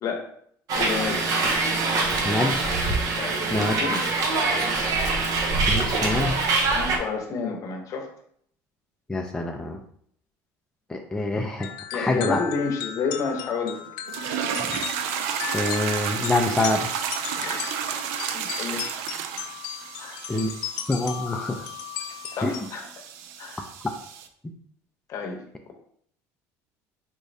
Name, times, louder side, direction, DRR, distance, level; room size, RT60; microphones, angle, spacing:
voice 1, 0.7-1.2 3.2-4.1 6.7-8.1 11.9-13.8 17.4-17.6 18.3-18.9 20.0-20.2 22.3-22.9 23.4-23.7 25.1-25.4, left 5 dB, 50° left, 3 dB, 0.8 m, -30 dB
Hiss, 0.7-7.0, right 3 dB, 55° right, 0.7 m, -24 dB
voice 2, 2.2-2.6 3.5-3.8 5.7-6.4 9.1-9.8 10.9-12.4 14.7-14.8 15.5-17.0 20.3-20.5 20.9-21.7 22.4-22.5, left 2 dB, 10° left, 2 dB, 0.3 m, -26 dB
sound 1, 11.6-22.7, left 10 dB, 75° left, 0.4 m, -36 dB
sound 2, 14.1-24.3, right 8 dB, 90° right, 0.4 m, -32 dB
3.7 x 3.1 x 2.6 m, 0.65 s
supercardioid pair, 110°, 7 cm